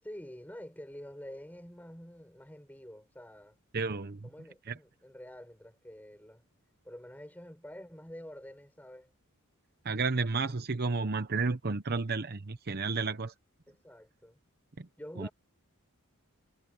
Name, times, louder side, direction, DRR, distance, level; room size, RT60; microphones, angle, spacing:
voice 1, 0.0-3.6 4.2-6.4 6.8-9.1 13.7-14.4 15.0-15.3, equal, 5° left, 6.6 m, -48 dB
voice 2, 3.7-4.3 4.7-4.8 9.8-13.3 14.8-14.9 15.2-15.3, right 4 dB, 45° right, 0.8 m, -32 dB
head